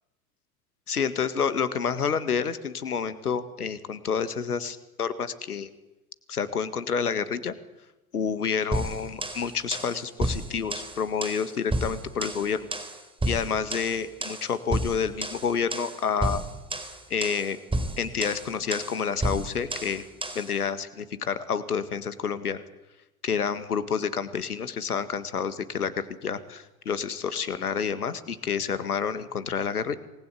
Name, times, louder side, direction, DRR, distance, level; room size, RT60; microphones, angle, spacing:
voice 1, 0.9-5.7 6.3-7.5 8.1-12.6 13.3-16.4 17.1-17.6 18.0-20.0 20.4-22.6 23.2-29.9, left 6 dB, 80° left, 13 dB, 1.9 m, -29 dB
sound 1, 8.7-20.5, right 1 dB, 10° right, 4.1 m, -32 dB
27.0 x 20.0 x 8.5 m, 0.99 s
figure-of-eight pair, 75°, 44 cm